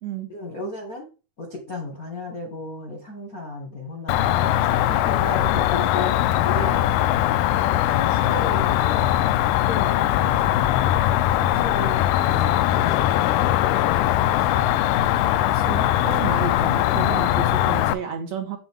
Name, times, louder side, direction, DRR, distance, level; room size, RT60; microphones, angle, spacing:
voice 1, 0.3-1.1 1.4-7.2 7.5-9.1 9.5-10.9 11.2-13.5 14.0-15.0, left 2 dB, 40° left, 0 dB, 1.3 m, -34 dB
Cricket, 4.1-17.9, left 13 dB, 85° left, 2.1 m, -21 dB
voice 2, 15.5-18.6, right 7 dB, 55° right, 2 dB, 2.3 m, -31 dB
7.8 x 7.3 x 3.6 m, 0.32 s
omnidirectional pair, 3.7 m